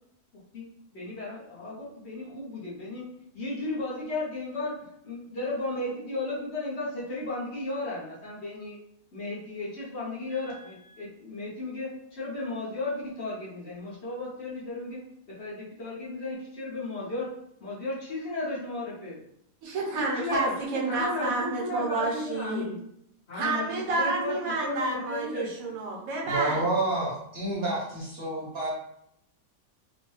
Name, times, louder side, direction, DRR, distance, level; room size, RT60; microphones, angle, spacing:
voice 1, 0.9-3.1 3.3-8.8 9.1-15.0 15.4-17.3 17.6-19.2 20.0-22.8 23.3-23.6 24.0-24.4 24.6-25.5, left 2 dB, 55° left, -6 dB, 1.0 m, -34 dB
voice 2, 10.3-11.0 19.6-22.7 23.3-26.7, right 3 dB, 75° right, -2 dB, 1.2 m, -30 dB
voice 3, 26.3-28.7, right 2 dB, 50° right, -4 dB, 0.9 m, -29 dB
3.0 x 2.1 x 3.1 m, 0.74 s
omnidirectional pair, 1.5 m